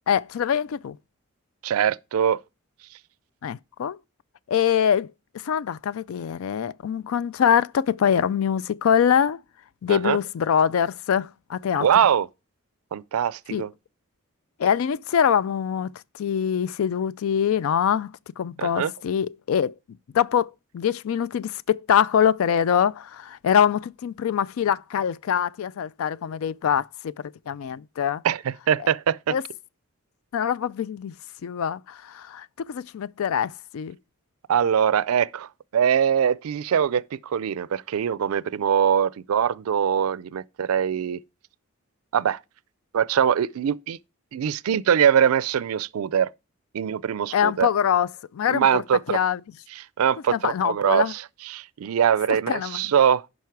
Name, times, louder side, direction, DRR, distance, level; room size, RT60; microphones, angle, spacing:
voice 1, 0.1-1.0 3.4-4.0 4.5-5.1 5.4-9.4 9.8-11.9 13.5-13.6 14.6-19.7 20.1-27.1 27.5-28.2 29.3-29.4 30.3-31.1 31.4-34.0 47.3-48.7 49.1-49.4 50.3-51.1 52.5-52.9, left 8 dB, 80° left, 0.3 m, -24 dB
voice 2, 1.6-2.4 9.9-10.2 11.8-12.3 12.9-13.7 18.6-18.9 28.2-29.3 34.5-41.2 42.1-42.4 42.9-44.0 44.3-46.3 46.7-47.7 48.5-49.2 50.0-51.2 51.5-53.2, right 8 dB, 90° right, 0.4 m, -22 dB
10.5 x 5.3 x 4.6 m
head